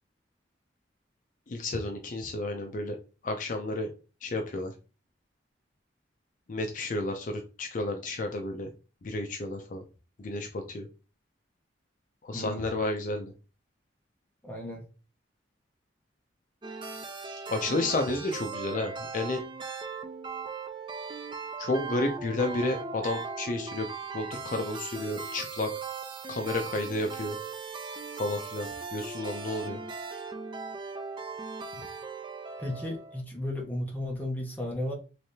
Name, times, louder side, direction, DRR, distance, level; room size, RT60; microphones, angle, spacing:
voice 1, 1.5-3.0 3.2-3.9 4.2-4.7 6.5-8.7 9.0-9.8 10.2-10.9 12.2-13.3 17.5-19.4 21.6-23.9 24.1-25.7 26.3-27.4 28.2-29.8, left 2 dB, 45° left, 4 dB, 0.4 m, -31 dB
voice 2, 12.3-12.8 14.4-14.8 32.6-34.9, left 1 dB, 10° left, -1 dB, 0.9 m, -34 dB
sound 1, 16.6-33.2, right 5 dB, 25° right, 0.4 m, -38 dB
3.3 x 3.2 x 2.7 m, 0.33 s
head